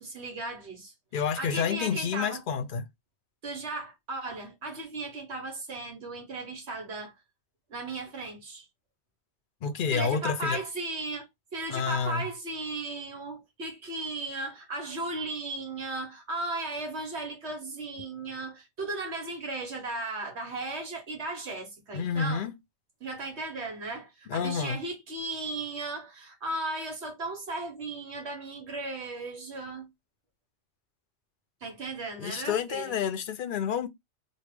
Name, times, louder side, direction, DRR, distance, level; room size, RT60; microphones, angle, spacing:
voice 1, 0.0-0.9 1.2-2.4 3.4-7.1 7.7-8.7 9.9-22.5 23.0-29.9 31.6-33.0, right 2 dB, 80° right, 1.5 m, -36 dB
voice 2, 1.1-2.9 9.6-10.6 11.7-12.3 21.9-22.5 24.3-24.8 32.2-33.9, left 6 dB, 55° left, 0.7 m, -29 dB
3.3 x 2.3 x 3.3 m
omnidirectional pair, 1.1 m